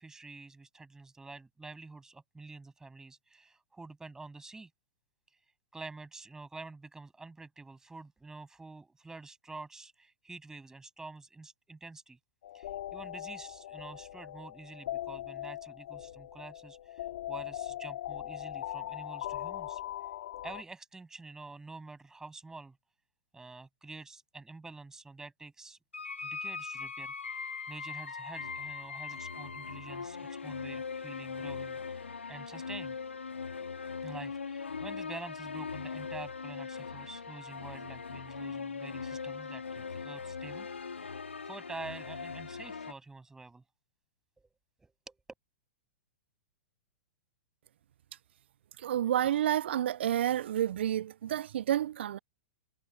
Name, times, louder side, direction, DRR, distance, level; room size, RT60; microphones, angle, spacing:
voice 1, 0.0-4.7 5.7-12.2 12.5-19.8 20.4-22.8 23.3-25.8 26.2-33.0 34.0-40.7 41.1-43.6 44.4-44.5 44.8-45.2, right 3 dB, 10° right, 7.9 m, -48 dB
sound 1, 12.4-20.6, left 13 dB, 65° left, 2.2 m, -40 dB
sound 2, 25.9-42.9, left 5 dB, 90° left, 3.1 m, -40 dB
voice 2, 48.8-52.2, right 11 dB, 70° right, 0.5 m, -29 dB
hypercardioid pair, 115°, 6 cm